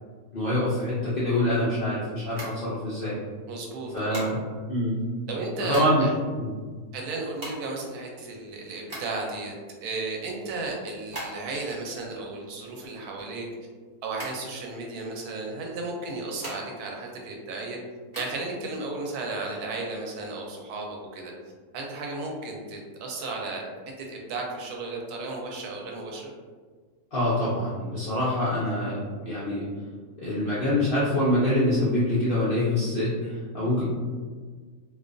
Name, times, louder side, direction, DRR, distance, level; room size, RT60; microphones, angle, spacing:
voice 1, 0.3-3.2 3.9-4.4 4.7-5.0 5.7-6.1 6.4-6.5 27.1-29.6 30.2-33.8, left 1 dB, 80° left, -9 dB, 0.5 m, -25 dB
sound 1, 2.3-3.3 4.1-4.7 5.3-6.2 6.5-6.6 6.7-9.4 9.8-11.7 12.0-13.8 14.1-15.1 15.9-17.0 17.3-18.3, right 1 dB, 25° right, 0.5 m, -40 dB
voice 2, 3.5-4.3 5.3-6.1 6.9-9.5 9.8-13.5 14.0-17.8 18.2-21.3 21.7-23.6 24.0-26.3, right 3 dB, 75° right, 0 dB, 1.1 m, -34 dB
2.5 x 2.3 x 2.4 m, 1.5 s
omnidirectional pair, 1.7 m